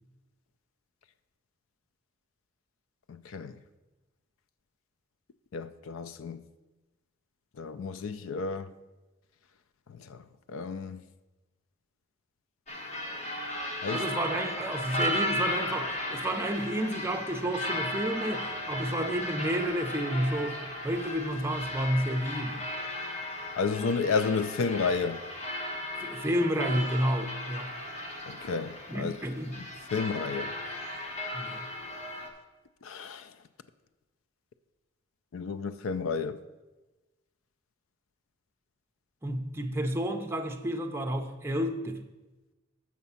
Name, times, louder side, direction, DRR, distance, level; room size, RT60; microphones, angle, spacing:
voice 1, 3.1-3.6 5.5-6.4 7.6-8.7 9.9-10.2 10.5-11.0 13.8-14.1 23.6-25.2 28.3-29.1 29.9-30.5 32.8-33.3 35.3-36.4, left 5 dB, 75° left, 0.4 m, -31 dB
sound 1, 12.7-32.3, left 1 dB, 35° left, 1.1 m, -35 dB
voice 2, 13.9-22.6 26.0-27.7 28.9-29.6 31.3-31.7 39.2-42.0, right 1 dB, 10° right, 0.6 m, -31 dB
7.3 x 5.9 x 5.5 m
head